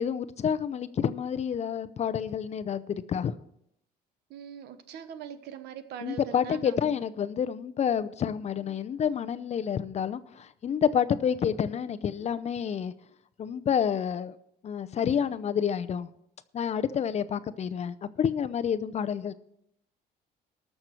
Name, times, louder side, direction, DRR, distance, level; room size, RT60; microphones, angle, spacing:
voice 1, 0.0-3.3 6.0-12.9 13.4-14.3 14.6-16.1 16.5-19.3, left 8 dB, 40° left, 0.6 m, -29 dB
voice 2, 4.3-7.0, right 9 dB, 80° right, 1.0 m, -42 dB
19.5 x 6.6 x 4.4 m
cardioid pair, 110°, 17 cm